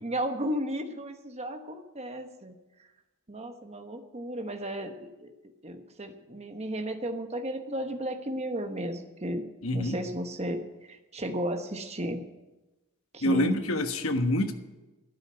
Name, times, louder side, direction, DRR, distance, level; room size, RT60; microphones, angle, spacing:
voice 1, 0.0-2.5 3.3-5.3 5.6-9.4 9.7-12.2 13.1-13.6, right 1 dB, 30° right, 6 dB, 1.1 m, -34 dB
voice 2, 9.6-10.0 13.2-14.5, left 1 dB, 70° left, 7 dB, 1.3 m, -26 dB
12.0 x 8.9 x 9.5 m, 1.1 s
head